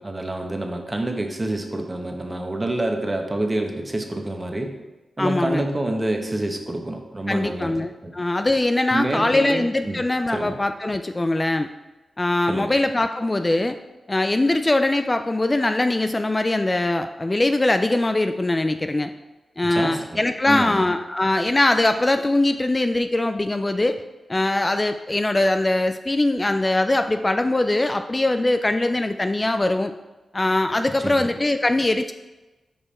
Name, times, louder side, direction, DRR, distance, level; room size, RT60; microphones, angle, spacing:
voice 1, 0.0-4.7 5.2-7.7 8.0-8.1 8.9-10.0 10.3-10.6 12.5-12.7 19.7-20.9 31.0-31.3, right 1 dB, 30° right, 3 dB, 1.0 m, -27 dB
voice 2, 5.2-5.6 7.3-11.7 12.2-13.8 14.1-19.1 19.6-24.0 24.3-29.9 30.3-32.1, left 2 dB, 30° left, 8 dB, 0.3 m, -22 dB
5.3 x 4.8 x 4.3 m, 1.1 s
cardioid pair, 45°, 0 cm